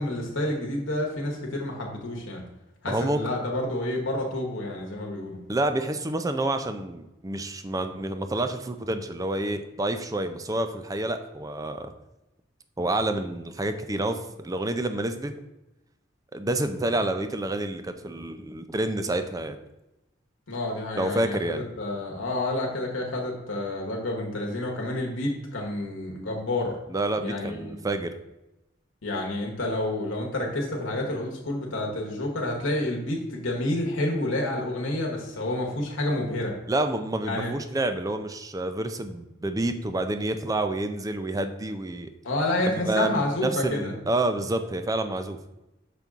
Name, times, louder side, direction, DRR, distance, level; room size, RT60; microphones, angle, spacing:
voice 1, 0.0-2.4 2.8-5.4 20.5-26.8 27.2-27.8 29.0-36.5 37.2-37.5 42.2-43.9, left 1 dB, 75° left, -1 dB, 1.2 m, -29 dB
voice 2, 2.9-3.2 5.5-11.9 12.8-15.3 16.3-19.6 20.9-21.6 26.9-28.2 36.7-42.1 42.7-45.4, right 2 dB, 20° right, 8 dB, 0.4 m, -28 dB
5.9 x 5.2 x 3.6 m, 0.96 s
head